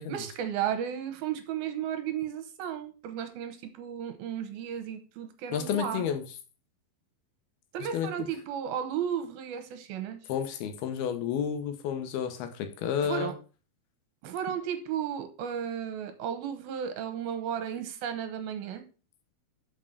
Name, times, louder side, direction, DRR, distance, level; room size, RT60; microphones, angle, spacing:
voice 1, 0.1-6.0 7.7-10.2 13.0-13.3 14.2-18.8, right 9 dB, 80° right, 7 dB, 2.9 m, -34 dB
voice 2, 5.5-6.2 7.9-8.1 10.3-13.3, left 8 dB, 85° left, 7 dB, 3.0 m, -31 dB
6.4 x 5.6 x 6.6 m, 0.35 s
omnidirectional pair, 4.4 m